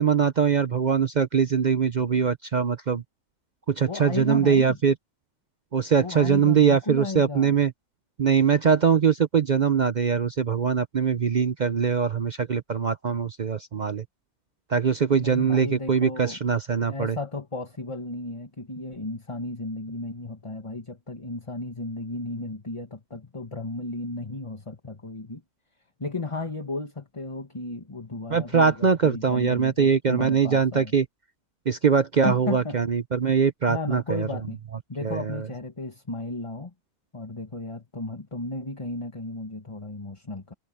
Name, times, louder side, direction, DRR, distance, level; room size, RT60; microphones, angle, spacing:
voice 1, 0.0-3.0 3.7-4.9 5.7-7.7 8.2-14.0 14.7-17.2 28.3-31.1 31.7-34.3 35.0-35.5, right 6 dB, 45° right, 0.6 m, -22 dB
voice 2, 3.8-4.8 6.0-7.5 15.1-16.4 16.9-25.4 26.0-30.9 32.2-32.8 33.7-34.6 34.9-36.7 37.1-40.5, left 2 dB, 20° left, 1.7 m, -34 dB
omnidirectional pair, 1.5 m